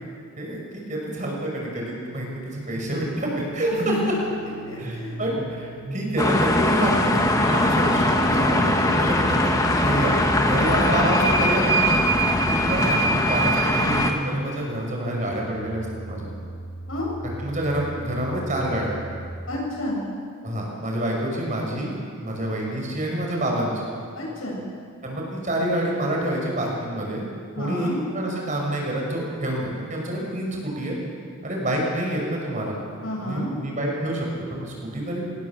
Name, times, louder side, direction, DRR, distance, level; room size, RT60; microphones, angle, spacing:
voice 1, 0.4-4.1 4.8-11.9 12.4-16.3 17.4-19.0 20.4-22.0 22.2-23.9 25.0-27.2 27.6-31.0 31.4-32.8 33.2-35.3, right 1 dB, 35° right, -1 dB, 5.9 m, -27 dB
sound 1, 3.3-19.3, right 1 dB, 20° right, 5.4 m, -37 dB
voice 2, 3.7-4.1 4.6-5.2 10.7-11.3 16.9-17.1 19.5-20.1 24.1-24.7 27.5-28.0 33.0-33.5, equal, 80° left, -2 dB, 7.8 m, -30 dB
sound 2, 6.2-14.1, left 1 dB, 15° left, 1.6 m, -21 dB
25.5 x 18.5 x 7.3 m, 2.3 s
head